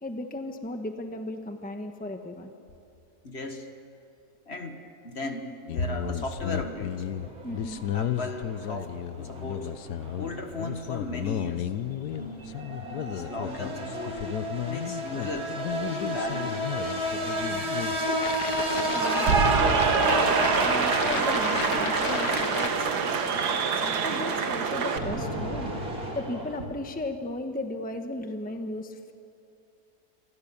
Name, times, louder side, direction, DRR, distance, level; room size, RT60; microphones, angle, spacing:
voice 1, 0.0-2.5 7.4-7.8 18.9-19.4 20.6-23.1 23.7-25.7 26.1-29.1, left 1 dB, 5° left, 5 dB, 1.1 m, -35 dB
voice 2, 3.2-3.7 4.5-7.1 7.9-8.9 9.2-9.8 10.2-11.7 12.1-12.4 13.1-14.2 14.7-15.6 15.9-16.6, left 2 dB, 40° left, 6 dB, 1.7 m, -36 dB
sound 1, 5.7-22.7, left 10 dB, 85° left, 1.4 m, -34 dB
sound 2, 6.9-26.7, equal, 65° right, 3.2 m, -33 dB
Cheering / Applause, 18.7-25.0, right 5 dB, 90° right, 1.9 m, -25 dB
27.0 x 24.0 x 7.1 m, 2.6 s
omnidirectional pair, 1.7 m